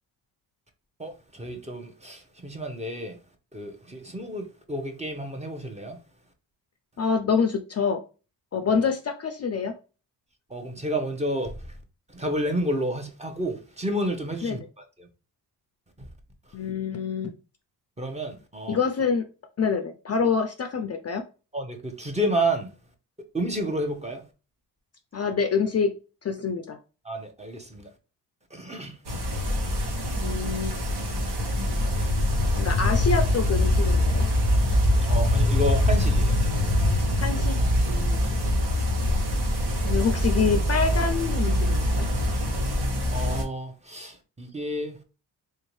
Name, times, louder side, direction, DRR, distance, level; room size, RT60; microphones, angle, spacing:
voice 1, 1.0-3.2 3.5-6.0 10.5-11.8 12.1-15.1 16.0-16.1 18.0-18.8 21.5-22.7 23.3-24.3 27.0-27.9 28.5-29.0 35.1-36.4 43.1-45.0, right 1 dB, 15° right, 0.7 m, -30 dB
voice 2, 7.0-8.0 8.5-9.7 14.4-14.6 16.5-17.3 18.7-19.3 19.6-21.2 25.1-26.8 30.2-30.7 32.6-34.2 37.2-37.6 37.9-38.2 39.8-42.1, left 5 dB, 40° left, 0.4 m, -26 dB
sound 1, 29.0-43.4, left 1 dB, 65° right, 1.2 m, -23 dB
3.5 x 2.7 x 3.0 m
cardioid pair, 90°, 42 cm